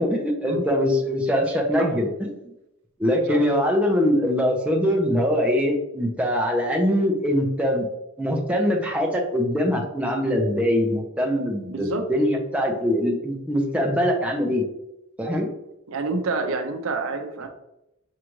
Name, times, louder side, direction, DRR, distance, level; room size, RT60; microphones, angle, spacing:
voice 1, 0.0-2.3 3.0-7.9 8.2-14.6 15.2-15.5, equal, 5° right, 0 dB, 0.6 m, -22 dB
voice 2, 11.7-12.0 15.9-17.5, right 3 dB, 80° right, 5 dB, 0.6 m, -27 dB
6.4 x 2.5 x 3.0 m, 0.86 s
head